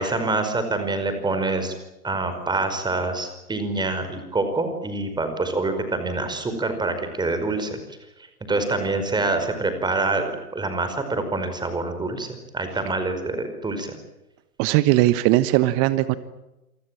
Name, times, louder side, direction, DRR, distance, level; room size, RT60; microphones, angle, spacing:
voice 1, 0.0-1.7 2.0-7.8 8.4-12.3 12.5-13.9, right 3 dB, 10° right, 8 dB, 5.2 m, -26 dB
voice 2, 14.6-16.2, right 16 dB, 30° right, 14 dB, 1.2 m, -19 dB
28.5 x 23.5 x 7.6 m, 0.95 s
figure-of-eight pair, 115°, 46 cm